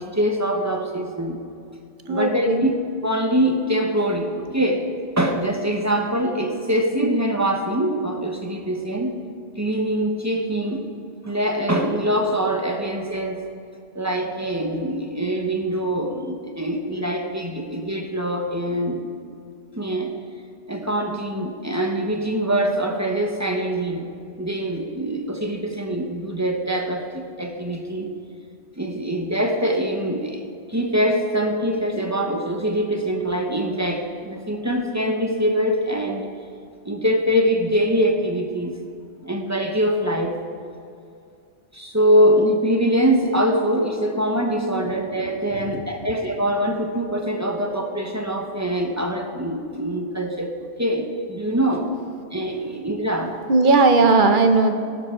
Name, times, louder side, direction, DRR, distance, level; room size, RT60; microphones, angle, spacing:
voice 1, 0.0-1.4 2.1-2.7 3.0-4.9 5.2-9.2 9.6-10.9 11.2-13.5 13.9-19.1 19.7-20.1 20.7-24.1 24.4-28.1 28.8-36.3 36.8-38.8 39.2-40.4 41.7-50.5 50.8-51.9 52.3-53.4, equal, 15° right, 3 dB, 1.0 m, -23 dB
voice 2, 2.1-2.7 45.5-45.8 53.5-54.7, right 3 dB, 50° right, 6 dB, 0.9 m, -17 dB
14.0 x 12.0 x 3.7 m, 2.4 s
omnidirectional pair, 1.2 m